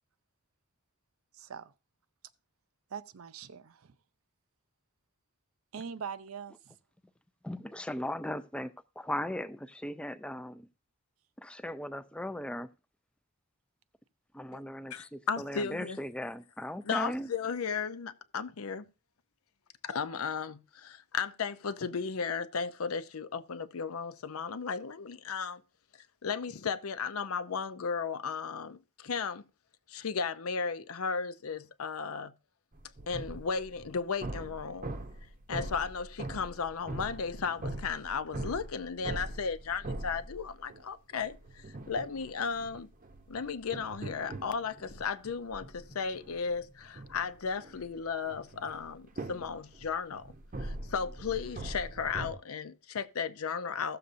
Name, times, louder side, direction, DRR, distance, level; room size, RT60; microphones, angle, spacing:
voice 1, 1.3-1.7 2.9-4.0 5.7-6.8, right 7 dB, 80° right, 0.6 m, -42 dB
voice 2, 7.4-10.7 11.4-12.7 14.3-17.3, left 1 dB, 5° left, 0.4 m, -38 dB
voice 3, 14.9-16.0 16.9-18.9 19.8-25.6 26.2-29.4 29.9-32.3 33.1-35.0 35.5-42.9 43.3-50.3 50.6-54.0, left 5 dB, 85° left, 0.6 m, -35 dB
sound 1, 32.7-40.8 41.2-52.3, right 2 dB, 40° right, 0.7 m, -42 dB
16.0 x 6.8 x 2.6 m
head